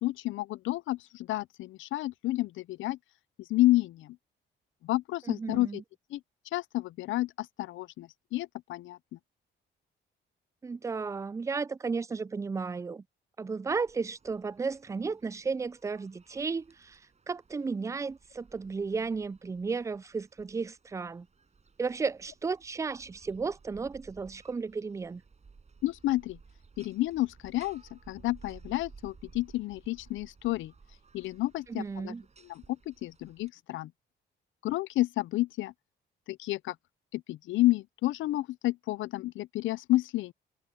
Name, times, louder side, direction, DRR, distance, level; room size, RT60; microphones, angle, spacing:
voice 1, 0.0-3.0 3.5-4.2 4.8-5.8 6.1-6.2 6.5-9.0 25.8-26.4 26.8-30.7 31.1-32.1 32.4-33.9 34.6-35.7 36.3-36.7 37.1-40.3, left 17 dB, 80° left, 0.5 m, -30 dB
voice 2, 5.3-5.8 10.6-13.0 13.4-17.0 17.3-21.3 21.8-25.2 31.7-32.2, right 4 dB, 15° right, 0.3 m, -34 dB
sound 1, 13.7-33.5, right 5 dB, 35° right, 6.0 m, -57 dB
cardioid pair, 90°, 20 cm